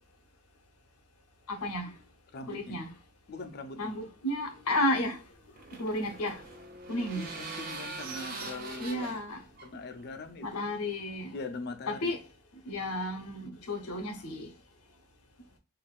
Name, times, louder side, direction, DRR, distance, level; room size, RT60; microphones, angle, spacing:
voice 1, 1.5-1.9 2.5-2.9 3.8-5.2 5.8-6.4 6.9-7.2 8.8-9.4 10.4-11.4 11.9-12.2 12.7-14.5, left 1 dB, 85° left, 0.7 m, -32 dB
voice 2, 2.3-2.8 3.3-3.9 7.1-9.2 9.6-10.7 11.3-12.1, left 3 dB, 45° left, 0.4 m, -41 dB
sound 1, 5.0-10.5, right 3 dB, 40° right, 0.5 m, -43 dB
3.4 x 2.5 x 2.3 m
head